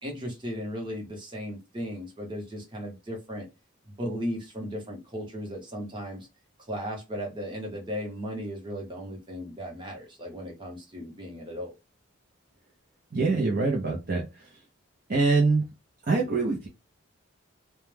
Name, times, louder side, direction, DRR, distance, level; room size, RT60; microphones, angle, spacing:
voice 1, 0.0-3.5 3.8-6.3 6.7-11.7, equal, 25° right, 0 dB, 0.8 m, -36 dB
voice 2, 13.1-14.5 15.1-15.6 16.1-16.7, right 3 dB, 45° right, -1 dB, 0.5 m, -24 dB
2.2 x 2.1 x 3.2 m, 0.24 s
head